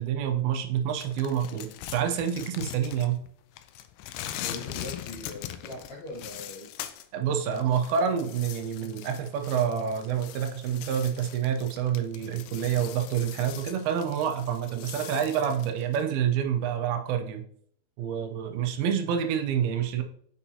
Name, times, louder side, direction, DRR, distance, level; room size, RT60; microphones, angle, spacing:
voice 1, 0.0-3.2 7.1-17.4 18.0-20.0, right 8 dB, 85° right, 5 dB, 2.5 m, -28 dB
sound 1, 1.0-3.3 3.6-7.1 7.4-16.0, left 12 dB, 85° left, 1.9 m, -41 dB
voice 2, 4.2-6.7, left 2 dB, 65° left, -5 dB, 1.8 m, -41 dB
7.0 x 5.3 x 2.8 m, 0.63 s
omnidirectional pair, 4.4 m